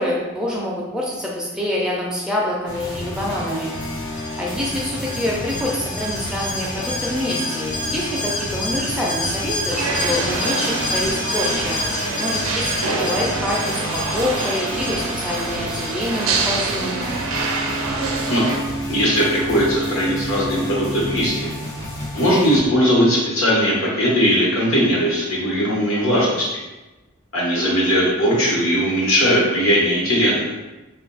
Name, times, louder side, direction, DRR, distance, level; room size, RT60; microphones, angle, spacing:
voice 1, 0.0-3.7 4.4-11.8 12.2-17.2, left 1 dB, 5° right, -4 dB, 0.4 m, -26 dB
sound 1, 2.7-22.6, equal, 55° left, 1.0 m, -30 dB
Alarm, 3.7-17.2 17.5-17.6, left 2 dB, 35° left, 0.6 m, -29 dB
sound 2, 9.7-18.6, right 3 dB, 80° right, 0.5 m, -26 dB
voice 2, 18.9-21.5 22.1-26.5 27.3-30.4, equal, 80° left, -5 dB, 1.1 m, -19 dB
2.7 x 2.4 x 3.9 m, 1.1 s
head